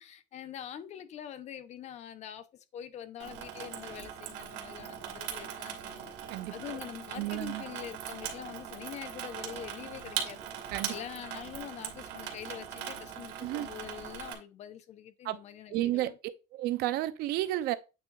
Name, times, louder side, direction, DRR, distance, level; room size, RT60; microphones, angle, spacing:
voice 1, 0.0-2.5 2.7-6.1 6.5-10.5 10.9-16.2, left 10 dB, 40° left, 0.8 m, -44 dB
Water tap faucet / Sink (filling or washing), 3.2-14.3, right 9 dB, 80° right, 2.2 m, -40 dB
voice 2, 6.3-6.8 7.2-7.6 10.7-10.9 13.4-13.7 15.2-15.4 15.7-16.1 16.5-17.7, right 15 dB, 65° right, 0.7 m, -32 dB
8.7 x 3.7 x 4.0 m
cardioid pair, 170°, 17 cm